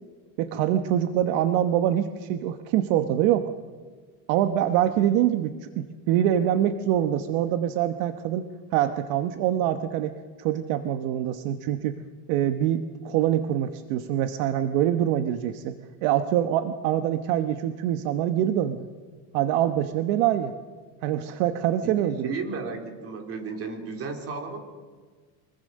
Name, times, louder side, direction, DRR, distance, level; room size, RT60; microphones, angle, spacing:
voice 1, 0.4-3.5 4.3-10.1 10.4-12.0 12.3-15.7 16.0-18.9 19.3-20.5 21.0-22.3, right 11 dB, 60° right, 9 dB, 1.2 m, -24 dB
voice 2, 21.8-24.6, right 4 dB, 30° right, 4 dB, 3.5 m, -34 dB
24.5 x 22.0 x 6.5 m, 1.5 s
cardioid pair, 160°, 44 cm